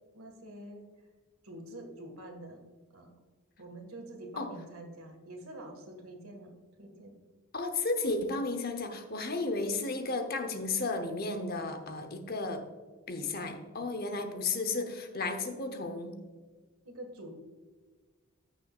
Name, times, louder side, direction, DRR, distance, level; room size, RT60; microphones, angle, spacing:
voice 1, 0.1-1.1 1.4-2.6 2.9-3.1 3.6-6.5 6.8-7.2 14.7-14.9 15.4-15.6 16.9-17.3, right 1 dB, 80° right, 3 dB, 1.7 m, -46 dB
voice 2, 7.5-12.6 13.1-16.2, left 3 dB, 45° left, 7 dB, 0.8 m, -33 dB
14.5 x 6.5 x 2.4 m, 1.4 s
head